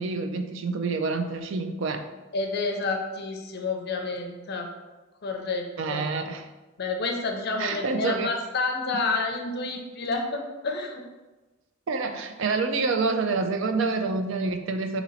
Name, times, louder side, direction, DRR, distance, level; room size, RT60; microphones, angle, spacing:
voice 1, 0.0-2.0 5.8-6.5 7.6-8.3 11.9-15.0, right 4 dB, 60° right, 6 dB, 0.4 m, -27 dB
voice 2, 2.3-4.7 5.2-6.2 6.8-11.0, left 3 dB, 50° left, 3 dB, 0.6 m, -29 dB
4.1 x 3.0 x 4.1 m, 1.2 s
head